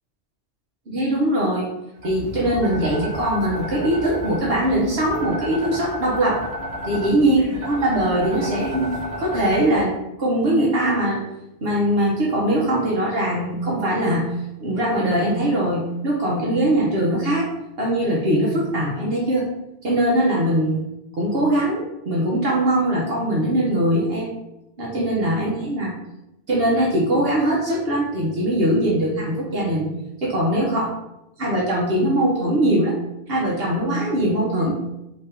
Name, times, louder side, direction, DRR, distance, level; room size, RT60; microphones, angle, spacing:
voice 1, 0.9-1.7 2.0-6.5 6.8-11.2 11.6-14.3 14.6-17.5 17.8-19.5 19.8-20.8 21.2-24.3 24.8-25.9 26.5-29.9 30.2-30.9 31.4-33.0 33.3-34.8, right 1 dB, 60° right, -4 dB, 1.1 m, -21 dB
sound 1, 2.0-9.8, equal, 35° right, 1.6 m, -32 dB
3.5 x 2.9 x 4.3 m, 0.90 s
omnidirectional pair, 1.2 m